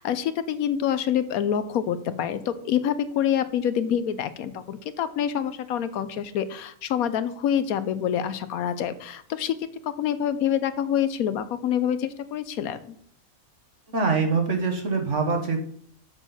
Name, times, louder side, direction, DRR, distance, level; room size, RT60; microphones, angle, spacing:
voice 1, 0.0-9.6 9.8-13.0, left 9 dB, 80° left, 13 dB, 1.1 m, -26 dB
voice 2, 13.9-15.6, right 4 dB, 55° right, 4 dB, 1.6 m, -24 dB
7.0 x 6.3 x 5.5 m, 0.63 s
omnidirectional pair, 1.5 m